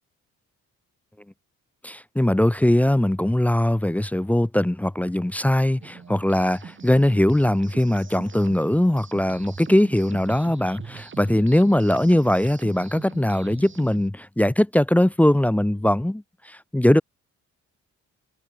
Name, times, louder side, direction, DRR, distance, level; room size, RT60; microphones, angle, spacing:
voice 1, 1.8-17.0, left 1 dB, 5° left, 0.6 m, -21 dB
sound 1, 5.8-14.1, right 6 dB, 40° right, 6.5 m, -42 dB
cardioid pair, 90°, 30 cm